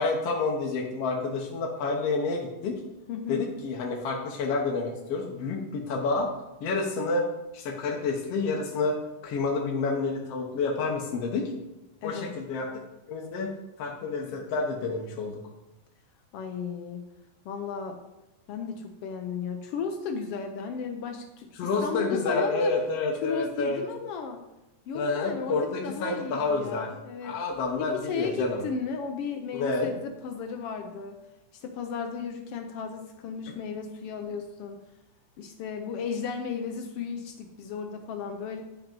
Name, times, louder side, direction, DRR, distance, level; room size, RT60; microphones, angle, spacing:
voice 1, 0.0-2.8 3.3-6.3 6.6-7.3 7.5-9.0 9.2-11.5 12.0-12.7 13.1-15.4 21.6-23.8 24.9-26.9 27.2-28.6 29.5-29.9, left 3 dB, 65° left, 0 dB, 1.8 m, -29 dB
voice 2, 3.1-3.4 12.0-12.3 16.3-17.0 17.4-18.0 18.5-22.7 23.2-24.4 24.9-27.4 27.8-31.2 31.5-34.8 35.4-38.6, left 5 dB, 85° left, 5 dB, 1.3 m, -34 dB
10.5 x 5.9 x 5.2 m, 0.99 s
omnidirectional pair, 3.5 m